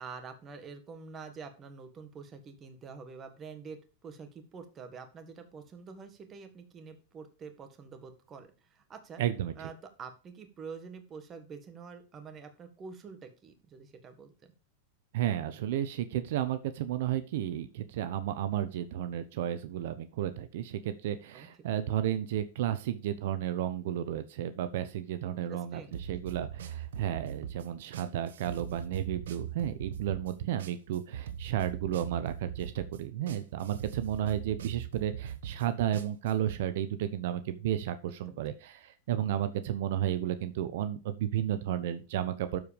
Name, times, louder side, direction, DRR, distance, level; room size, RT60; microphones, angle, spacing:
voice 1, 0.0-9.2 9.6-14.3 21.3-21.5 25.3-26.0 38.3-38.4, right 5 dB, 25° right, 7 dB, 1.7 m, -47 dB
voice 2, 9.2-9.5 15.1-42.6, right 11 dB, 65° right, 11 dB, 0.9 m, -33 dB
sound 1, 25.9-36.6, right 9 dB, 85° right, 1.1 m, -41 dB
12.5 x 4.9 x 5.2 m, 0.33 s
supercardioid pair, 140°, 0 cm